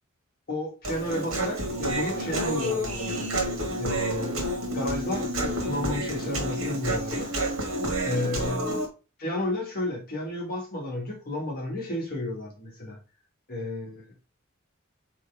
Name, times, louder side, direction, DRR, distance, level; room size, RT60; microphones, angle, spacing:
voice 1, 0.5-3.3 3.8-4.4 4.7-7.3 8.0-8.7 9.2-13.0 13.5-14.1, left 1 dB, 45° left, 1.6 m, -32 dB
Human voice, 0.8-8.9, right 1 dB, 80° right, 1.6 m, -29 dB
4.1 x 3.5 x 3.4 m
head